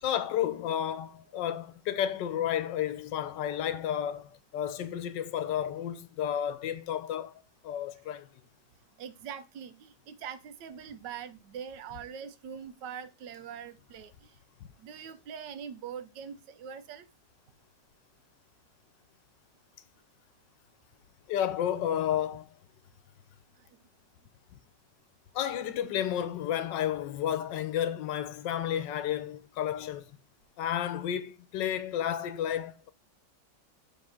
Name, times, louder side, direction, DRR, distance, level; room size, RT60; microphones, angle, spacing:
voice 1, 0.0-7.3 7.6-8.3 21.3-22.5 25.3-30.1 30.6-32.9, left 10 dB, 85° left, 1.3 m, -31 dB
voice 2, 9.0-14.4 14.8-17.1 23.6-23.7, right 7 dB, 80° right, 1.3 m, -43 dB
7.3 x 3.5 x 5.5 m
omnidirectional pair, 1.9 m